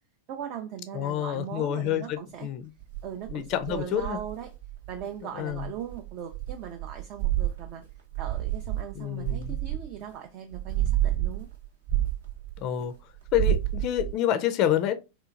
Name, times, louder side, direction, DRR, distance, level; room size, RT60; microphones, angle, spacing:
voice 1, 0.3-2.5 3.0-4.5 4.9-7.8 8.2-11.5, right 9 dB, 40° right, 0.4 m, -39 dB
voice 2, 0.9-2.6 3.3-4.2 5.4-5.6 9.0-9.6 12.6-12.9 13.3-14.9, left 11 dB, 40° left, 0.4 m, -28 dB
sound 1, 2.8-5.1 5.5-10.1 10.5-12.8 13.2-14.1, right 13 dB, 65° right, 0.9 m, -29 dB
3.7 x 2.4 x 2.4 m
figure-of-eight pair, 90°, 0 cm